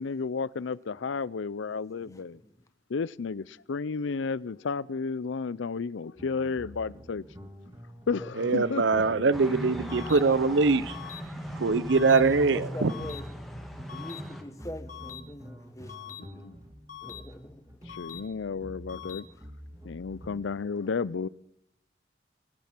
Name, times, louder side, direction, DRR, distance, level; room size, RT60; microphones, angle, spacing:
voice 1, 0.0-2.4 2.9-7.5 8.1-9.2 9.6-9.7 16.2-16.6 17.9-19.3 19.8-21.3, left 5 dB, 80° left, 0.5 m, -32 dB
voice 2, 2.0-2.5 7.4-7.5 8.2-10.3 12.5-13.3 13.9-16.5 17.0-17.8 18.9-19.4 19.7-19.9, left 1 dB, 15° left, 1.2 m, -45 dB
sound 1, 6.2-20.4, equal, 20° right, 1.5 m, -47 dB
voice 3, 8.4-11.0 11.5-12.9, right 4 dB, 70° right, 0.6 m, -23 dB
sound 2, 9.3-14.4, equal, ahead, 1.5 m, -39 dB
sound 3, 9.9-10.2 10.9-11.2 11.9-12.2 12.9-13.2 13.9-14.2 14.9-15.2 15.9-16.2 16.9-17.2 17.9-18.2 18.9-19.2, left 11 dB, 40° left, 1.4 m, -42 dB
22.0 x 10.5 x 6.0 m
head